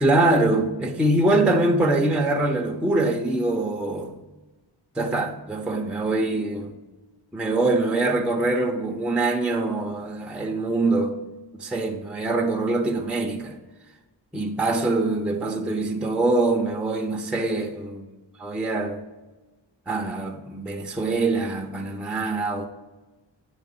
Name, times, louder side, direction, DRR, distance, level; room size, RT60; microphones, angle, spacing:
voice 1, 0.0-4.1 5.0-6.8 7.3-11.2 11.6-13.6 14.3-18.1 18.4-19.0 19.9-22.7, right 2 dB, ahead, 0.5 m, -24 dB
8.8 x 3.4 x 5.3 m
wide cardioid pair, 150°, 47 cm